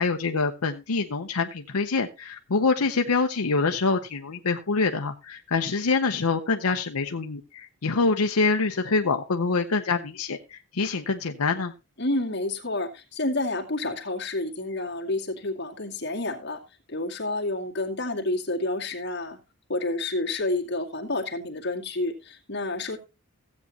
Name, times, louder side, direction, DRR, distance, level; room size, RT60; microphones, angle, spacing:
voice 1, 0.0-11.7, left 4 dB, 85° left, 5 dB, 0.8 m, -25 dB
voice 2, 12.0-16.6 16.9-19.4 19.7-23.0, left 2 dB, 50° left, 0 dB, 2.2 m, -29 dB
16.0 x 8.4 x 2.9 m, 0.27 s
head